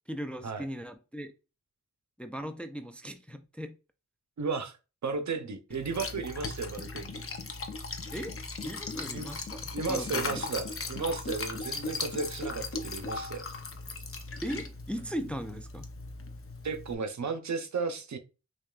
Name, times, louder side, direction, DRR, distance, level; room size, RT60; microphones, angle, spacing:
voice 1, 0.1-1.3 2.2-3.8 8.1-10.5 14.4-15.9, equal, 5° left, 0.3 m, -38 dB
voice 2, 4.4-4.8 5.0-7.2 9.1-9.3 9.7-13.4 16.6-18.2, right 4 dB, 70° right, 0.6 m, -34 dB
Liquid, 5.7-16.9, left 3 dB, 50° left, 0.6 m, -38 dB
6.0 x 2.3 x 2.3 m
wide cardioid pair, 60°, 29 cm